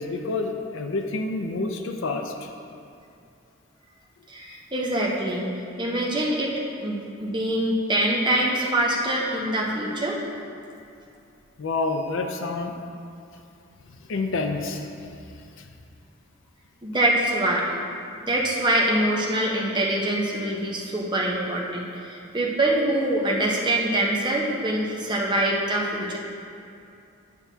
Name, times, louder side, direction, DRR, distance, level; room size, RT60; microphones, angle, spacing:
voice 1, 0.0-2.3 4.5-4.6 11.6-12.7 14.1-14.8, left 3 dB, 65° left, 4 dB, 0.4 m, -28 dB
voice 2, 4.3-5.5 5.8-6.5 6.8-10.2 16.8-17.8 18.2-26.2, right 1 dB, 20° right, -3 dB, 0.7 m, -24 dB
9.1 x 5.6 x 2.7 m, 2.5 s
head